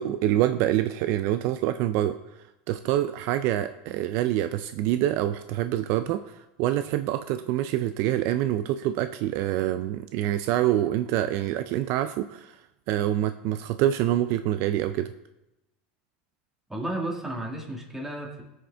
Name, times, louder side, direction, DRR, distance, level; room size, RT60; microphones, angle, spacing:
voice 1, 0.0-2.2 2.7-12.6 12.9-15.1, right 13 dB, 60° right, 10 dB, 0.4 m, -26 dB
voice 2, 16.7-18.4, right 1 dB, 5° right, 0 dB, 2.1 m, -33 dB
17.0 x 6.5 x 3.4 m, 0.93 s
supercardioid pair, 120°, 5 cm